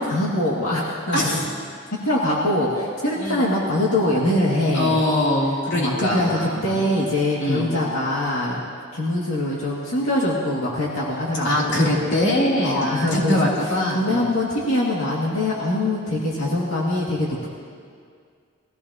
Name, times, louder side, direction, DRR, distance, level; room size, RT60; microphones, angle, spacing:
voice 1, 0.0-1.4 2.0-5.0 5.7-8.6 8.9-11.9 12.6-13.5 13.9-17.5, left 1 dB, 80° left, -5 dB, 2.1 m, -23 dB
voice 2, 1.1-1.5 3.2-3.5 4.7-6.8 7.4-7.7 11.4-14.3, left 1 dB, 55° left, -5 dB, 3.0 m, -22 dB
22.0 x 15.0 x 2.9 m, 2.1 s
head